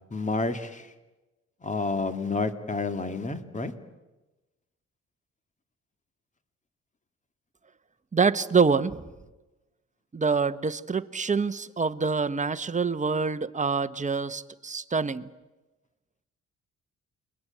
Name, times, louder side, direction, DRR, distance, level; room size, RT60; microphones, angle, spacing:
voice 1, 0.1-0.9 1.6-3.7, left 3 dB, 25° left, 2.3 m, -29 dB
voice 2, 8.1-9.0 10.1-15.3, right 5 dB, 25° right, 1.1 m, -26 dB
30.0 x 22.5 x 8.6 m
cardioid pair, 90°, 30 cm